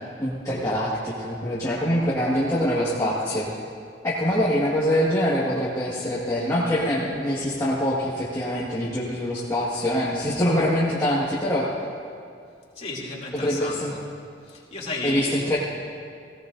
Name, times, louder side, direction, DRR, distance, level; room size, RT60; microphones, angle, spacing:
voice 1, 0.2-3.5 4.0-11.7 13.4-13.9 15.0-15.6, equal, 20° left, -8 dB, 1.7 m, -24 dB
voice 2, 12.7-14.0 14.4-15.5, left 2 dB, 35° left, -5 dB, 2.8 m, -33 dB
18.0 x 17.0 x 2.6 m, 2.3 s
head